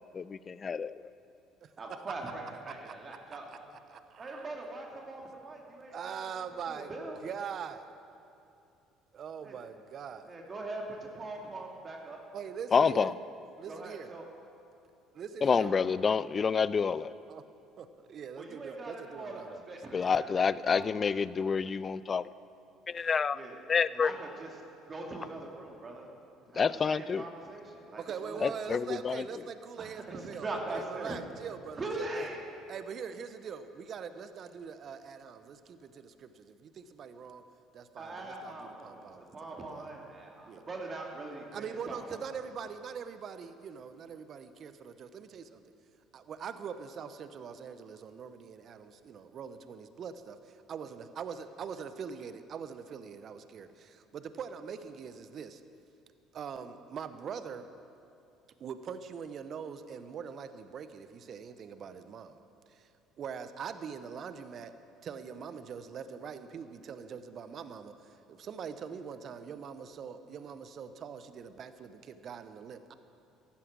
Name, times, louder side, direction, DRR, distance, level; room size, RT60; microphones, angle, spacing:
voice 1, 0.1-1.1 12.7-13.1 15.4-17.1 19.9-22.2 22.9-23.4 23.7-24.1 26.5-27.2 28.4-29.3, left 6 dB, 35° left, 18 dB, 0.4 m, -28 dB
voice 2, 1.8-3.5 4.2-6.2 6.9-7.2 9.4-9.5 10.2-12.2 13.7-14.2 15.6-15.7 18.3-20.4 20.7-20.9 23.3-23.6 23.9-24.5 24.9-26.1 26.5-28.5 29.8-31.2 31.8-32.4 38.0-42.0, right 2 dB, 35° right, 0 dB, 2.3 m, -41 dB
voice 3, 3.9-4.5 5.9-6.9 7.2-7.9 9.1-10.3 12.3-13.1 13.6-14.1 15.1-15.7 17.3-17.4 17.8-19.6 28.0-31.8 32.1-32.3 32.7-37.4 37.7-39.2 39.5-39.9 40.4-40.7 41.5-45.6 46.1-55.6 56.3-57.7 58.6-62.4 62.7-62.9 63.2-64.7 65.0-72.9, right 7 dB, 50° right, 11 dB, 0.8 m, -43 dB
14.5 x 11.5 x 6.2 m, 2.7 s
hypercardioid pair, 60°, 0 cm